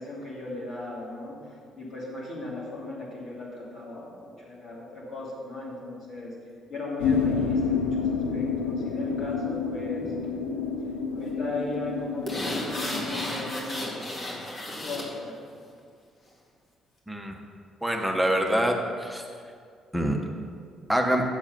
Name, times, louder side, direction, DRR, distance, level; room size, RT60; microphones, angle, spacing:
voice 1, 0.0-1.4 1.8-6.3 6.7-10.5 11.1-15.4, left 2 dB, 50° left, -5 dB, 2.8 m, -37 dB
sound 1, 7.0-13.5, left 5 dB, 75° left, 0.6 m, -29 dB
sound 2, 12.3-15.1 15.5-15.6, left 1 dB, 35° left, 2.1 m, -33 dB
voice 2, 17.8-19.2 19.9-20.2 20.9-21.2, equal, 5° right, 2 dB, 1.3 m, -25 dB
9.0 x 7.0 x 5.6 m, 2.2 s
figure-of-eight pair, 45°, 0 cm